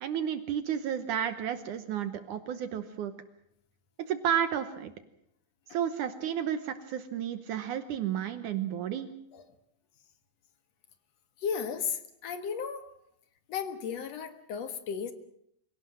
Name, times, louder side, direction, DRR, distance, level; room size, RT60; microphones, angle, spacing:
voice 1, 0.0-3.1 4.0-4.9 5.7-9.1, right 9 dB, 70° right, 10 dB, 2.3 m, -32 dB
voice 2, 11.4-12.9 13.5-15.1, left 6 dB, 55° left, 9 dB, 2.3 m, -34 dB
25.5 x 17.5 x 7.6 m, 0.73 s
omnidirectional pair, 4.2 m